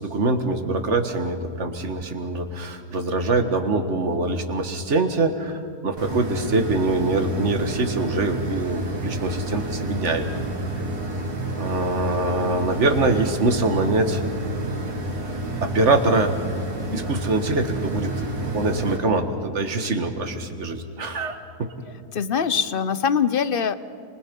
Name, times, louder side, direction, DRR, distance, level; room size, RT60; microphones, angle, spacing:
voice 1, 0.0-10.3 10.6-10.9 11.6-14.2 15.6-16.3 16.9-21.7, right 2 dB, 45° right, 5 dB, 2.0 m, -24 dB
sound 1, 6.0-19.0, right 1 dB, 80° right, 3.0 m, -29 dB
voice 2, 22.1-23.7, left 7 dB, 45° left, 13 dB, 0.8 m, -22 dB
29.0 x 25.0 x 5.4 m, 2.4 s
omnidirectional pair, 1.7 m